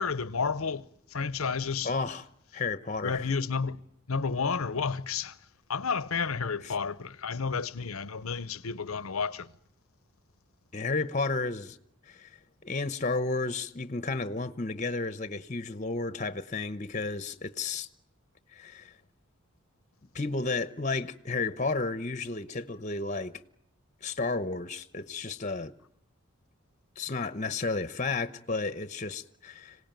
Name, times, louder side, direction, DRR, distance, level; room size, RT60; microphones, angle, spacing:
voice 1, 0.0-1.9 3.0-3.8 4.1-5.4 5.7-9.5, left 5 dB, 85° left, 0.9 m, -31 dB
voice 2, 1.8-2.2 2.5-3.2 6.6-6.7 10.7-11.8 12.1-12.3 12.6-17.9 18.5-18.9 20.1-23.4 24.0-25.7 27.0-29.8, left 3 dB, 35° left, 0.9 m, -32 dB
26.5 x 18.0 x 9.1 m
head